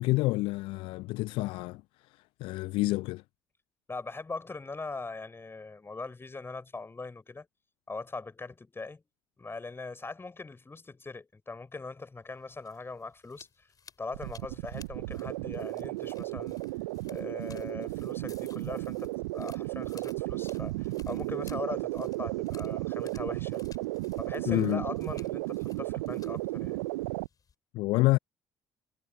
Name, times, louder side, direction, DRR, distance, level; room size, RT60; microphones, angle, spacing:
voice 1, 0.0-1.8 2.1-3.2 24.5-24.8 27.7-28.2, left 21 dB, 60° left, 0.4 m, -28 dB
voice 2, 3.9-7.5 7.9-9.0 9.4-13.7 14.0-16.6 17.1-23.6 24.2-26.8, left 3 dB, 25° left, 6.5 m, -41 dB
sound 1, 12.3-27.5, left 6 dB, 40° left, 4.4 m, -58 dB
sound 2, 14.1-27.3, right 22 dB, 75° right, 0.5 m, -34 dB
figure-of-eight pair, 50°, 10 cm